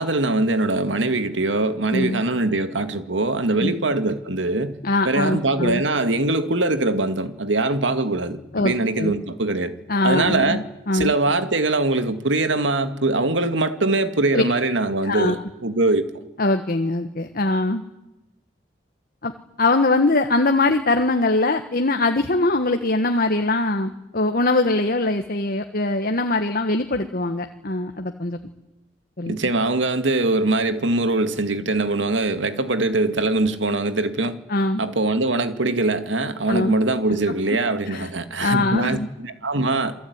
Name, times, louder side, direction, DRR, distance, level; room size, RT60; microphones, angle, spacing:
voice 1, 0.0-4.8 5.0-9.7 10.0-10.6 10.9-16.1 29.3-34.4 34.8-40.0, right 2 dB, 85° right, 2.1 m, -22 dB
voice 2, 1.9-2.2 3.6-3.7 4.8-5.8 8.5-9.2 9.9-11.1 14.3-14.4 15.0-15.4 16.4-17.8 19.2-19.3 19.6-28.4 29.2-29.4 34.5-34.8 36.5-36.7 37.9-38.1 38.4-39.1, left 2 dB, 55° left, 1.5 m, -22 dB
28.0 x 19.0 x 9.7 m
head